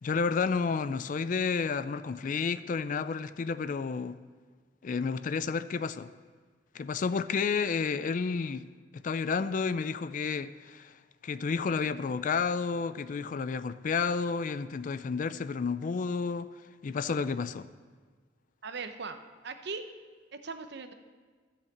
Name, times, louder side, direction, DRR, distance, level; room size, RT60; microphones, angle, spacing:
voice 1, 0.0-4.2 4.8-6.1 6.7-8.7 8.9-10.9 11.2-16.5 16.8-17.7, left 5 dB, 45° left, 0.4 m, -31 dB
voice 2, 18.6-19.9 20.3-20.9, right 4 dB, 60° right, 0.8 m, -39 dB
13.5 x 5.7 x 7.8 m
head